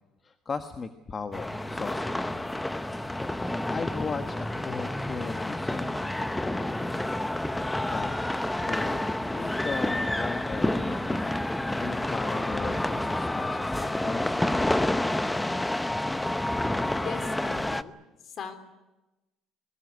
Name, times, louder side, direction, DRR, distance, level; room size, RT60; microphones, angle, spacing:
voice 1, 0.2-2.7 2.9-3.2 3.7-6.9 7.9-8.1 8.7-11.4 11.8-14.4, left 5 dB, 25° left, 8 dB, 1.4 m, -37 dB
sound 1, 1.3-17.8, left 1 dB, 5° left, 0.8 m, -29 dB
voice 2, 16.7-18.0 18.2-18.5, left 6 dB, 40° left, 10 dB, 3.4 m, -41 dB
22.5 x 20.5 x 9.6 m, 1.0 s
cardioid pair, 135°, 0 cm